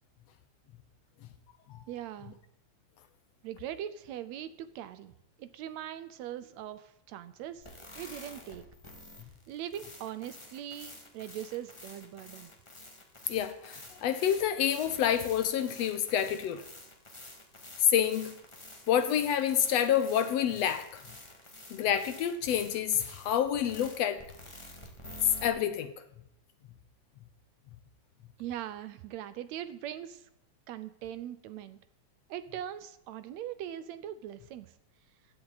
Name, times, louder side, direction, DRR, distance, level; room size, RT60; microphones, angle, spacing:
voice 1, 1.9-2.4 3.4-5.1 5.4-7.7 7.9-8.7 9.5-12.5 28.4-30.3 30.7-31.8 32.3-34.7, right 11 dB, 75° right, 13 dB, 1.8 m, -41 dB
sound 1, 7.6-25.5, left 1 dB, 15° left, 1.4 m, -49 dB
voice 2, 13.3-16.6 17.8-18.4 18.9-21.0 21.7-24.2 25.4-25.9, left 9 dB, 70° left, 10 dB, 1.7 m, -28 dB
15.5 x 10.5 x 4.1 m, 0.82 s
omnidirectional pair, 3.4 m